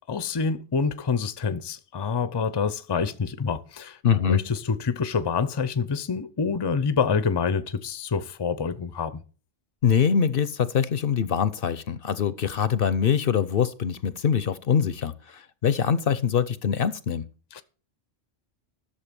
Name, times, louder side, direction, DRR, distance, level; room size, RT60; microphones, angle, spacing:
voice 1, 0.1-4.0 4.3-9.2 17.5-17.6, left 5 dB, 30° left, 0.6 m, -27 dB
voice 2, 4.0-4.5 9.8-17.3, left 7 dB, 60° left, 0.8 m, -24 dB
11.5 x 6.7 x 6.8 m
omnidirectional pair, 1.1 m